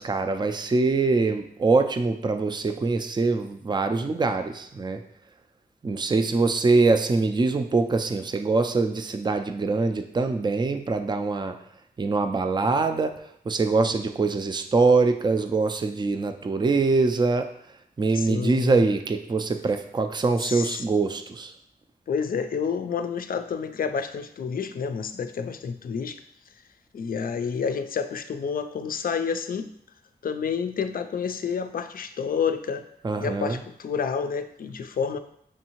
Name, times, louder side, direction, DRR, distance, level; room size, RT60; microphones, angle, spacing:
voice 1, 0.0-5.0 5.8-11.5 12.0-13.2 13.5-17.5 18.0-21.5 33.0-33.6, right 3 dB, 25° right, 7 dB, 0.4 m, -23 dB
voice 2, 18.1-18.8 20.4-20.8 22.1-26.2 26.9-29.7 30.2-32.9 33.2-35.2, left 6 dB, 60° left, 9 dB, 0.4 m, -29 dB
6.1 x 2.7 x 2.9 m, 0.70 s
cardioid pair, 60°, 17 cm